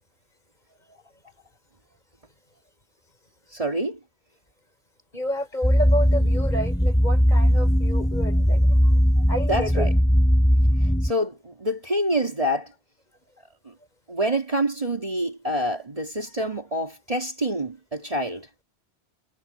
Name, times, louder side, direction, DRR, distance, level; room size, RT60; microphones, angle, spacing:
voice 1, 3.5-4.0 9.5-9.9 10.8-12.7 13.7-13.8 14.1-18.5, right 1 dB, 30° right, 2.3 m, -27 dB
voice 2, 5.1-9.9, equal, 40° left, 4.5 m, -31 dB
sound 1, 5.6-11.1, equal, 5° left, 3.7 m, -19 dB
omnidirectional pair, 1.2 m